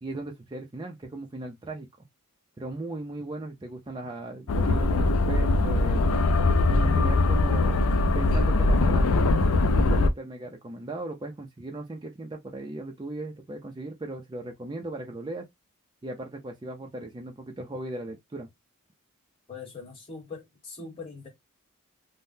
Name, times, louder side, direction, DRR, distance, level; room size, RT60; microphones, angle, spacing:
voice 1, 0.0-2.1 2.6-6.1 6.7-9.1 9.8-15.5 16.0-18.5, right 2 dB, 20° right, 0.4 m, -37 dB
sound 1, 4.5-10.1, left 2 dB, 70° left, 0.5 m, -22 dB
voice 2, 19.5-21.3, left 4 dB, 25° left, 1.4 m, -41 dB
3.5 x 2.1 x 2.7 m
head